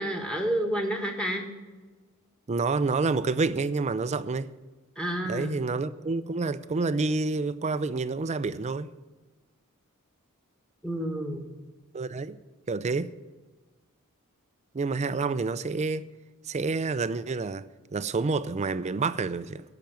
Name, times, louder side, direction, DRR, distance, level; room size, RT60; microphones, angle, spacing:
voice 1, 0.0-1.4 5.0-5.6 10.8-11.4, right 1 dB, 5° left, 1.5 m, -29 dB
voice 2, 2.5-4.5 5.2-8.9 11.9-12.4 12.7-13.1 14.7-16.1 16.5-19.6, right 3 dB, 30° right, 0.4 m, -28 dB
12.0 x 5.9 x 9.2 m
head